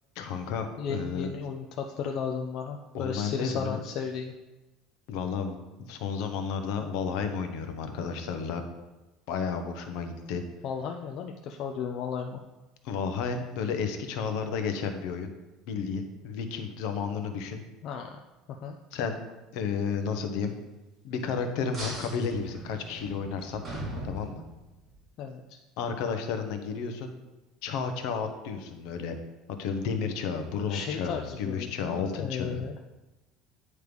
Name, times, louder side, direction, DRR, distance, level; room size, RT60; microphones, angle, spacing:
voice 1, 0.2-1.3 2.9-3.8 5.1-5.6 5.9-8.6 9.3-10.4 12.8-15.3 15.7-17.6 18.9-19.2 19.5-20.5 21.0-23.6 24.0-24.4 25.8-27.1 27.6-29.2 29.6-32.6, left 6 dB, 60° left, 7 dB, 0.8 m, -32 dB
voice 2, 0.8-4.3 10.6-12.4 17.8-18.2 18.5-18.8 25.2-25.6 30.7-32.7, left 6 dB, 45° left, 4 dB, 0.4 m, -34 dB
sound 1, 21.7-24.9, right 1 dB, 15° right, 2.4 m, -40 dB
9.5 x 3.2 x 5.2 m, 1.1 s
cardioid pair, 170°, 0 cm